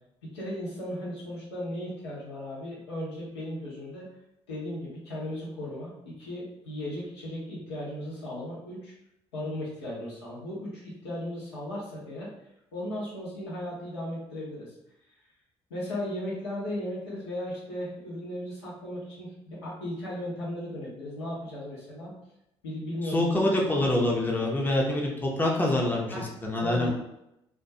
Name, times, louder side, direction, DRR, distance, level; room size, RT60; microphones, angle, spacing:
voice 1, 0.2-4.0 4.5-8.9 9.3-12.3 12.7-14.7 15.7-22.1 22.6-23.5 26.1-26.3 26.6-26.9, left 1 dB, 85° left, -6 dB, 0.8 m, -36 dB
voice 2, 23.0-26.9, left 1 dB, 15° left, -2 dB, 0.6 m, -26 dB
2.3 x 2.2 x 2.7 m, 0.84 s
figure-of-eight pair, 50°, 14 cm